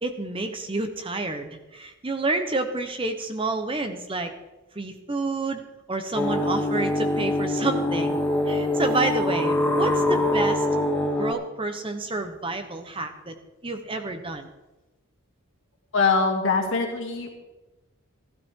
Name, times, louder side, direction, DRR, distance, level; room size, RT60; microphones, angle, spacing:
voice 1, 0.0-4.3 4.7-5.6 5.9-8.2 8.5-10.7 11.2-13.3 13.6-14.5, right 2 dB, 25° right, 7 dB, 0.8 m, -29 dB
sound 1, 6.1-11.3, left 1 dB, 5° left, 1.9 m, -24 dB
voice 2, 15.9-17.3, left 4 dB, 55° left, 1 dB, 2.4 m, -23 dB
16.0 x 12.5 x 3.7 m, 1.1 s
head